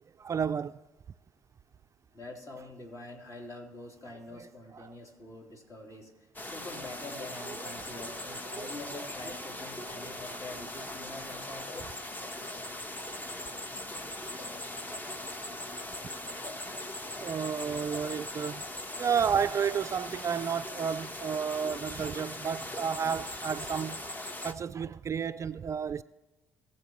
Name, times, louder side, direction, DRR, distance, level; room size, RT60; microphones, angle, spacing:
voice 1, 0.2-0.7 4.8-4.9 7.5-7.9 8.5-8.7 17.2-18.6 19.0-24.0 24.4-26.0, right 7 dB, 35° right, 0.4 m, -31 dB
voice 2, 2.1-6.1 6.4-11.9, left 2 dB, 40° left, 3.6 m, -45 dB
sound 1, 6.3-24.5, left 1 dB, 20° left, 1.2 m, -40 dB
21.0 x 7.6 x 3.1 m
hypercardioid pair, 55°, 8 cm